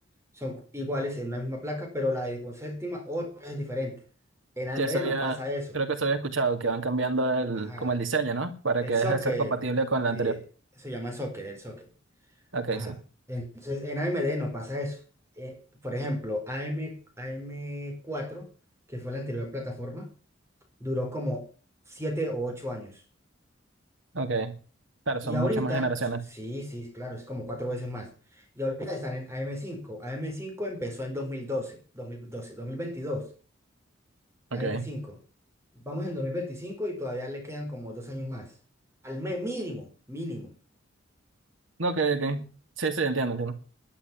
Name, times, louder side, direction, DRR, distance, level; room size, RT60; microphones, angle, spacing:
voice 1, 0.3-4.0 4.6-5.8 7.6-7.9 8.8-9.6 10.1-10.4 10.8-11.9 12.7-12.9 13.3-15.0 15.4-18.5 18.9-20.1 20.8-21.5 21.9-23.0 25.2-25.9 26.3-33.3 34.5-35.2 35.7-38.5 39.0-40.5, left 1 dB, 15° right, 4.7 m, -33 dB
voice 2, 4.8-5.4 5.7-10.4 12.5-12.9 24.1-24.5 25.1-26.2 34.5-34.8 41.8-42.5 42.8-43.6, right 3 dB, 85° right, 2.5 m, -27 dB
11.5 x 10.5 x 7.2 m
head